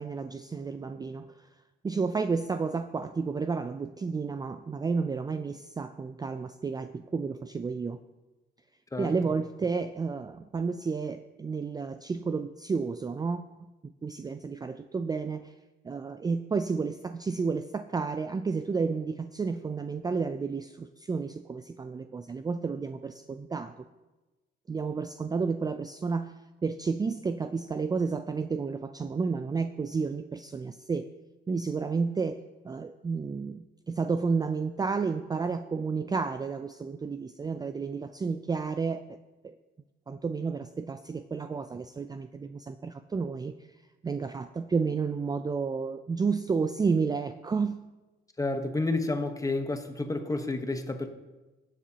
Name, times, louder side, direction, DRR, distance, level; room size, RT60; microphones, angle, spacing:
voice 1, 0.0-1.5 1.8-8.0 9.0-13.4 13.8-15.5 15.8-23.7 24.7-26.3 26.6-31.1 31.5-39.2 39.4-39.5 40.1-43.5 44.0-47.9, right 5 dB, 20° right, 10 dB, 0.3 m, -31 dB
voice 2, 48.4-51.1, left 2 dB, 15° left, 7 dB, 1.0 m, -30 dB
16.5 x 7.3 x 2.9 m, 1.1 s
cardioid pair, 90°, 20 cm